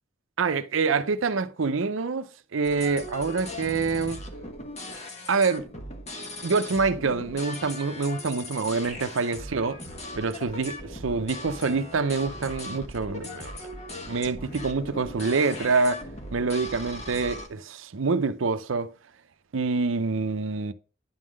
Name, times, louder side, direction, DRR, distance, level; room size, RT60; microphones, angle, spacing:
voice 1, 0.4-4.2 5.3-5.7 6.4-9.8 10.2-13.5 14.1-16.0 16.3-18.9 19.5-20.7, right 4 dB, 90° right, 0.6 m, -26 dB
sound 1, 2.7-17.5, left 1 dB, 35° left, 1.3 m, -39 dB
10.5 x 3.7 x 6.2 m
head